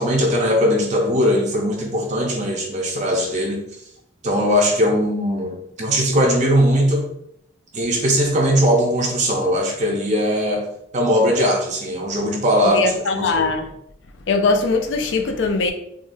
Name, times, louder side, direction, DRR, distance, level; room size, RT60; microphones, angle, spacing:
voice 1, 0.0-3.6 4.2-7.1 7.7-10.6 10.9-12.8 13.2-13.3, equal, 35° right, 0.5 m, -19 dB
voice 2, 12.6-13.7 14.3-15.7, left 3 dB, 70° left, 0.4 m, -20 dB
3.6 x 2.3 x 2.5 m
head